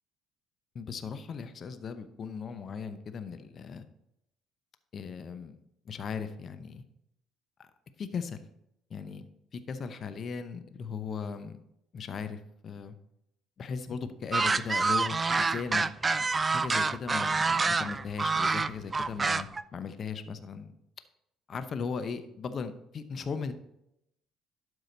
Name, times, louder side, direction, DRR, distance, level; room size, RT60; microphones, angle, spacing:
voice 1, 0.7-3.9 4.9-5.6 5.8-6.8 7.6-7.7 8.0-8.5 8.9-9.2 9.5-11.6 11.9-13.0 13.6-15.8 16.2-20.7 21.5-23.5, left 5 dB, 45° left, 10 dB, 0.8 m, -37 dB
sound 1, 14.3-19.6, right 4 dB, 30° right, 0.4 m, -27 dB
12.0 x 4.9 x 3.9 m, 0.79 s
hypercardioid pair, 55°, 0 cm